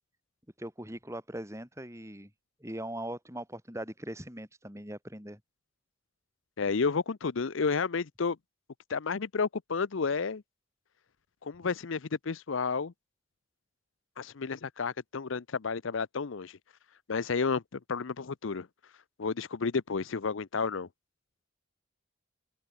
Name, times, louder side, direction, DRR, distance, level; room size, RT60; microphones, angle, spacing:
voice 1, 0.6-2.3 2.6-5.4, right 1 dB, 15° right, 7.7 m, -40 dB
voice 2, 6.6-8.4 8.9-10.4 11.4-12.9 14.2-16.6 17.1-18.7 19.2-20.9, left 5 dB, 80° left, 0.7 m, -31 dB
open air
head